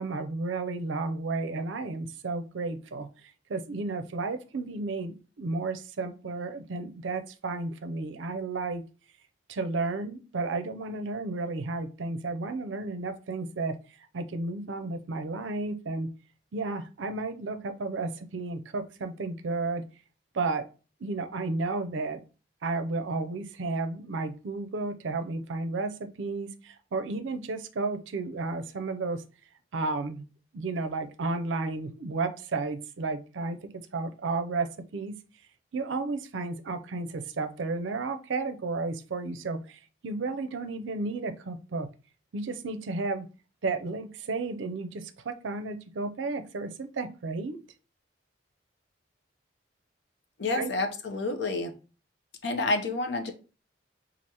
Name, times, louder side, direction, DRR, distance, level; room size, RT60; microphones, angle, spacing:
voice 1, 0.0-3.1 3.5-8.8 9.5-13.8 14.1-16.1 16.5-19.8 20.3-20.6 21.0-22.2 22.6-29.2 29.7-30.2 30.5-35.2 35.7-41.9 42.3-43.3 43.6-47.6 50.5-50.7, right 3 dB, 80° right, 10 dB, 0.5 m, -32 dB
voice 2, 50.4-51.7 52.4-53.3, left 2 dB, 65° left, 7 dB, 0.6 m, -29 dB
4.6 x 2.4 x 2.9 m, 0.34 s
head